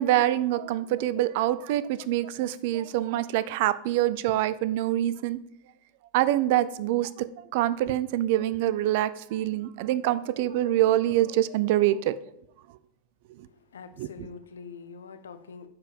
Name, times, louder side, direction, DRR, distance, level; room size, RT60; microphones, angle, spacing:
voice 1, 0.0-5.4 6.1-12.1 14.0-14.3, right 13 dB, 50° right, 16 dB, 0.4 m, -25 dB
voice 2, 13.5-15.7, left 5 dB, 65° left, 9 dB, 0.7 m, -44 dB
9.6 x 4.6 x 5.2 m, 0.77 s
figure-of-eight pair, 90°, 0 cm